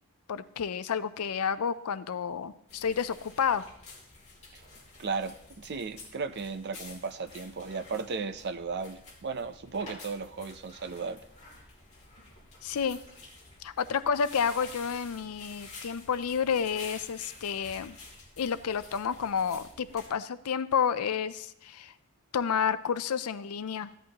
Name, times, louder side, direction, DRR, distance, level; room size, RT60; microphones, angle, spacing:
voice 1, 0.3-3.6 12.6-13.0 13.6-18.0 18.4-21.9 22.3-23.9, left 7 dB, 85° left, 14 dB, 0.5 m, -30 dB
sound 1, 2.7-20.1, left 3 dB, 30° left, 2.8 m, -50 dB
voice 2, 5.0-11.2, right 4 dB, 50° right, 11 dB, 0.6 m, -35 dB
15.5 x 11.0 x 2.9 m, 0.69 s
head